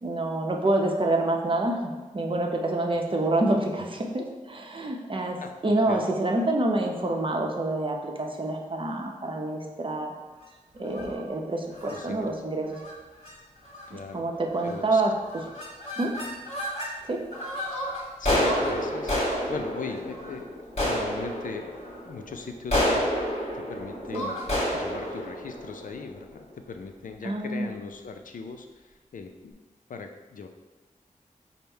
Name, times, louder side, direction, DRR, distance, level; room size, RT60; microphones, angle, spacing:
voice 1, 0.0-5.4 5.6-10.1 10.7-12.8 14.1-15.1 16.0-16.1 17.1-17.2 24.1-24.2 27.2-27.7, right 2 dB, 40° right, 1 dB, 0.7 m, -27 dB
voice 2, 5.4-6.1 11.9-12.3 13.9-14.2 14.6-15.0 18.2-24.4 24.7-29.6 29.9-30.5, left 4 dB, 75° left, 5 dB, 0.4 m, -39 dB
sound 1, 10.9-11.2 11.8-12.0 12.7-12.9 13.2-13.3 13.7-14.1 14.6-15.0 15.2-16.9 17.3-26.5, equal, 50° left, 1.5 m, -30 dB
5.3 x 2.1 x 4.4 m, 1.2 s
wide cardioid pair, 60°, 14 cm